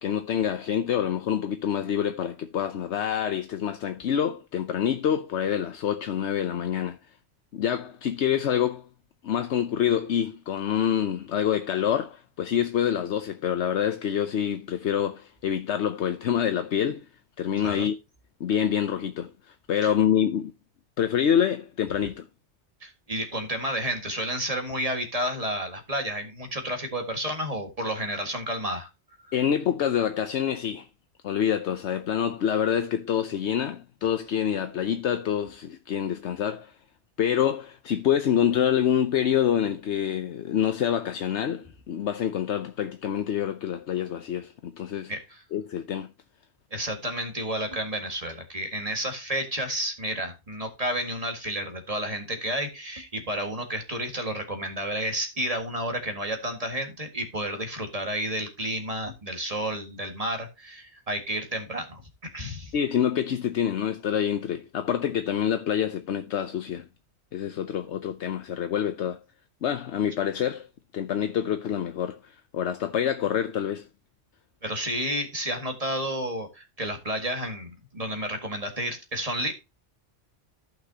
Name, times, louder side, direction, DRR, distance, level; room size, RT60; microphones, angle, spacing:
voice 1, 0.0-7.0 7.5-8.8 9.2-17.0 17.4-18.0 18.4-19.3 19.7-20.5 21.0-22.2 29.3-30.9 31.2-36.7 37.2-45.1 45.5-46.1 62.7-66.8 67.3-69.2 69.6-70.7 70.9-72.2 72.5-73.9, left 9 dB, 75° left, 1.0 m, -26 dB
voice 2, 17.6-17.9 19.8-19.9 22.8-28.9 45.1-45.4 46.7-62.7 74.6-79.5, right 1 dB, 30° right, 1.9 m, -31 dB
14.5 x 5.9 x 2.8 m
omnidirectional pair, 1.2 m